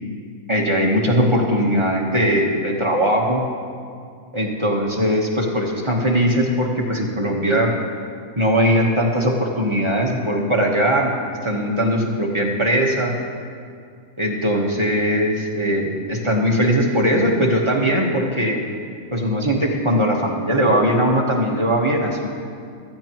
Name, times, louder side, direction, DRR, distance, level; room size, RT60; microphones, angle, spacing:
voice 1, 0.5-3.4 4.3-7.7 8.4-11.1 11.4-13.1 14.2-18.6 19.1-22.3, equal, 25° right, -2 dB, 1.1 m, -20 dB
15.5 x 14.0 x 3.0 m, 2.3 s
omnidirectional pair, 1.4 m